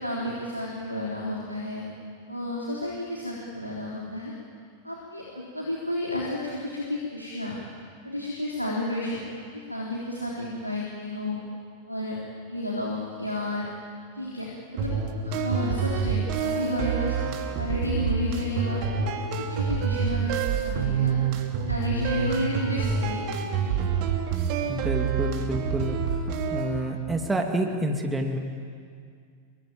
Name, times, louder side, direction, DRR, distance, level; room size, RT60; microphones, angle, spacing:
voice 1, 0.0-1.8 2.3-4.3 4.8-7.6 8.0-9.2 9.5-11.4 11.9-12.2 12.5-13.7 14.1-14.9 15.2-17.2 17.6-18.9 19.4-21.1 21.6-23.8 24.6-24.7, left 1 dB, 90° left, -4 dB, 3.6 m, -31 dB
sound 1, 14.8-26.7, right 6 dB, 45° right, 3.1 m, -27 dB
voice 2, 24.7-26.2 26.5-28.4, right 1 dB, 10° right, 2 dB, 2.6 m, -28 dB
26.5 x 23.5 x 9.0 m, 2.2 s
figure-of-eight pair, 90°, 0 cm